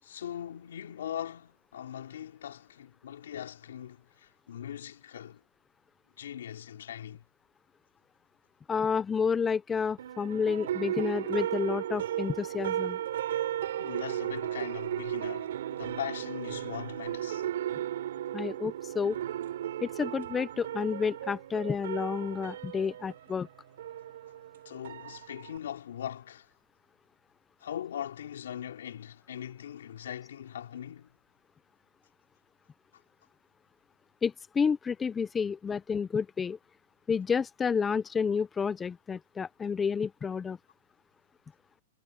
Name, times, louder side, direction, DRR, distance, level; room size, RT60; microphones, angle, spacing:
voice 1, 0.0-5.4 6.2-7.2 13.8-17.5 24.7-26.5 27.6-31.1, left 10 dB, 80° left, 3.7 m, -40 dB
voice 2, 8.7-13.0 18.3-19.2 19.8-23.5 34.2-36.6 37.1-40.6, left 6 dB, 15° left, 0.5 m, -30 dB
sound 1, 10.0-25.6, right 11 dB, 75° right, 3.8 m, -35 dB
hypercardioid pair, 145°, 0 cm